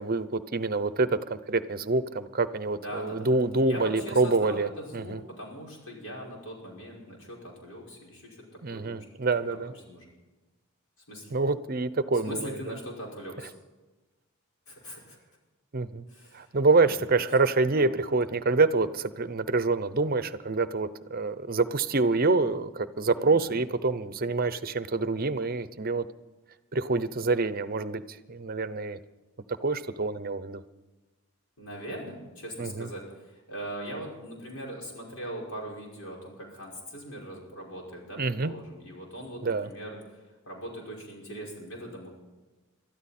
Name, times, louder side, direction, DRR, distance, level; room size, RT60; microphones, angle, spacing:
voice 1, 0.0-5.2 8.6-9.7 11.3-12.7 15.7-16.0 16.3-26.0 26.7-29.0 29.5-30.6 32.6-32.9 38.2-38.5 39.4-39.7, right 3 dB, 45° right, 14 dB, 0.7 m, -26 dB
voice 2, 2.8-3.4 3.6-9.1 9.5-10.1 11.1-11.4 12.2-13.5 14.7-15.2 16.1-16.6 16.8-17.0 17.8-17.9 23.2-23.5 31.6-40.2 40.5-42.1, equal, 80° left, -2 dB, 5.6 m, -40 dB
23.0 x 13.0 x 4.3 m, 1.2 s
head